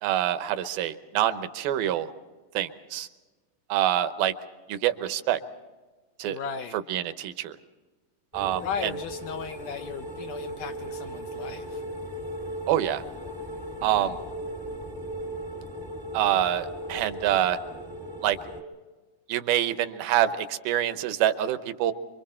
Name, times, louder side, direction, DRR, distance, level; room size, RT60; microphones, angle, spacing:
voice 1, 0.0-2.1 2.5-3.1 3.7-4.3 4.7-5.4 6.2-6.4 6.9-7.5 8.3-8.6 12.7-13.0 13.8-14.1 16.1-17.6 18.2-18.4 19.3-21.9, right 12 dB, 75° right, 10 dB, 2.7 m, -26 dB
voice 2, 6.3-6.8 8.6-11.8 13.8-14.2, left 7 dB, 75° left, 7 dB, 2.0 m, -36 dB
sound 1, 8.3-18.6, right 1 dB, 15° right, 0.8 m, -37 dB
26.5 x 24.0 x 4.3 m, 1.3 s
omnidirectional pair, 4.4 m